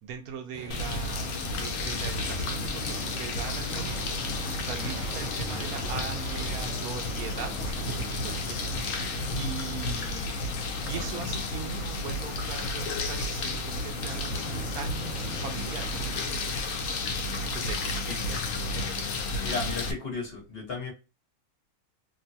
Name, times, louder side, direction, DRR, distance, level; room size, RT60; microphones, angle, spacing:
voice 1, 0.0-16.5 17.5-19.1, right 6 dB, 85° right, 1.1 m, -40 dB
sound 1, 0.5-6.7, right 1 dB, 30° right, 1.1 m, -45 dB
sound 2, 0.7-19.9, left 3 dB, 70° left, 1.0 m, -32 dB
sound 3, 1.0-16.3, right 3 dB, 60° right, 1.0 m, -42 dB
voice 2, 19.4-20.9, left 4 dB, 45° left, 1.2 m, -34 dB
3.0 x 2.2 x 2.6 m
omnidirectional pair, 1.5 m